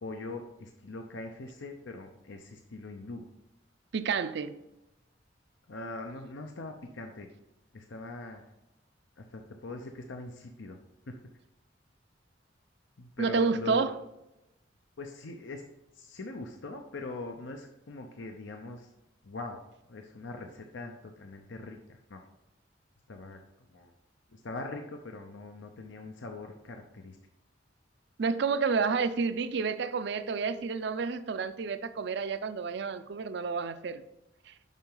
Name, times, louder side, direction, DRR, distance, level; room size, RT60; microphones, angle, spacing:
voice 1, 0.0-3.2 5.7-7.3 7.7-8.4 9.2-10.8 11.1-11.2 13.0-13.9 15.0-15.7 15.9-18.9 19.2-19.6 19.9-22.2 23.1-23.4 23.7-23.9 24.3-27.2, left 2 dB, 80° left, 4 dB, 0.7 m, -42 dB
voice 2, 3.9-4.5 13.2-13.9 28.2-34.0 34.5-34.6, right 5 dB, 65° right, 12 dB, 0.5 m, -30 dB
7.3 x 5.6 x 3.9 m, 0.90 s
head